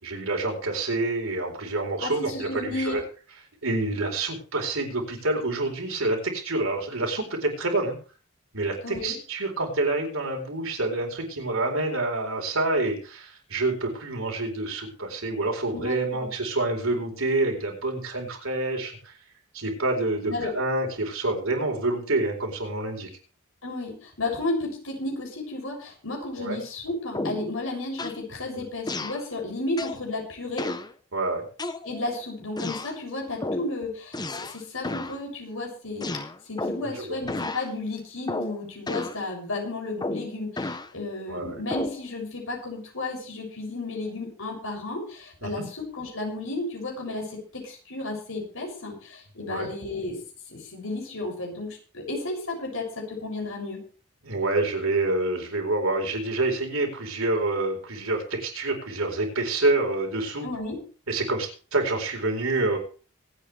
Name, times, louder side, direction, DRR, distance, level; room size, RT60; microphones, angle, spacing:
voice 1, 0.0-3.0 3.6-8.0 8.5-19.1 19.5-23.1 26.4-26.6 31.1-31.4 36.8-37.2 41.3-41.6 45.4-45.7 49.5-49.7 54.2-60.5 61.1-62.8, right 2 dB, 75° right, 2 dB, 4.3 m, -27 dB
voice 2, 2.0-3.0 8.8-9.1 15.7-16.3 20.3-20.5 23.6-30.7 31.8-50.2 50.5-53.8 60.4-60.8, left 2 dB, 65° left, 0 dB, 7.0 m, -33 dB
sound 1, 27.1-27.5 28.0-28.3 28.9-29.2 29.8-30.1 30.6-30.9 31.6-32.1 32.6-33.0 33.4-33.7 34.1-34.6 34.8-35.2 36.0-36.9 37.3-37.7 38.3-38.6 38.9-39.2 40.0-40.9 41.7-42.0, left 2 dB, 20° left, 0.9 m, -32 dB
25.5 x 8.9 x 3.4 m, 0.39 s
head